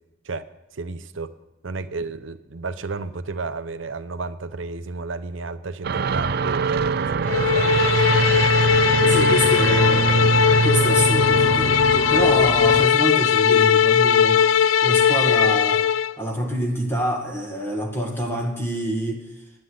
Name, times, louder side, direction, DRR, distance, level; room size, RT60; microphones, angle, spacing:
voice 1, 0.7-1.3 1.6-8.0 8.6-9.8, right 3 dB, 75° right, 12 dB, 0.8 m, -32 dB
sound 1, 5.8-12.9, right 4 dB, 55° right, 0.4 m, -22 dB
sound 2, 7.3-16.1, left 8 dB, 80° left, 0.4 m, -19 dB
voice 2, 9.1-10.1 10.6-15.8 16.2-19.3, right 1 dB, 10° left, 0 dB, 2.0 m, -26 dB
12.0 x 9.7 x 8.1 m, 0.97 s
head